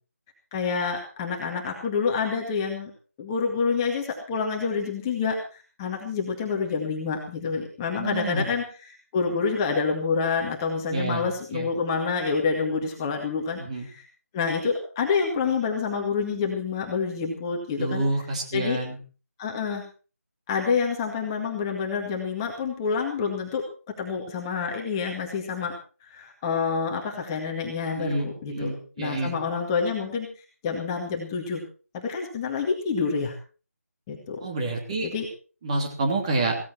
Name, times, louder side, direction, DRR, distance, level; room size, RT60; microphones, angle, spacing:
voice 1, 0.5-2.9 3.2-14.1 14.3-18.0 18.5-18.8 19.4-19.9 20.5-23.7 24.0-25.7 26.0-28.7 29.0-31.6 31.9-33.4 34.1-34.4 35.0-35.3, left 5 dB, 15° left, 0 dB, 2.1 m, -28 dB
voice 2, 8.0-8.4 10.9-11.7 13.6-13.9 17.8-19.0 28.0-29.4 34.4-35.1 35.6-36.6, right 2 dB, 25° right, 2 dB, 3.1 m, -28 dB
16.5 x 15.0 x 4.4 m, 0.37 s
figure-of-eight pair, 160°, 9 cm